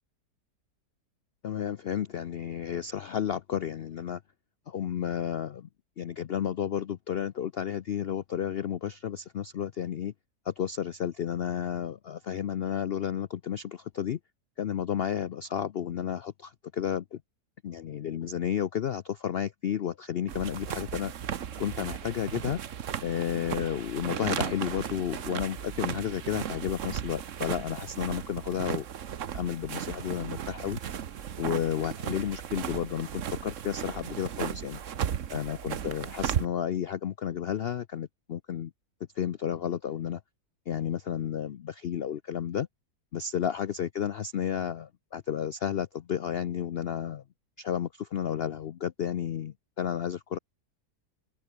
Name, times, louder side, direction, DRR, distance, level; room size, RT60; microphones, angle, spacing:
voice 1, 1.4-4.2 4.7-5.7 6.0-10.1 10.4-14.2 14.6-17.2 17.6-21.1 21.6-22.6 23.0-28.8 29.3-30.8 31.4-34.8 35.3-38.7 39.1-40.2 40.7-42.7 43.1-47.2 47.6-50.4, left 9 dB, 75° left, 0.5 m, -32 dB
sound 1, 20.3-36.5, right 9 dB, 55° right, 1.2 m, -35 dB
omnidirectional pair, 1.7 m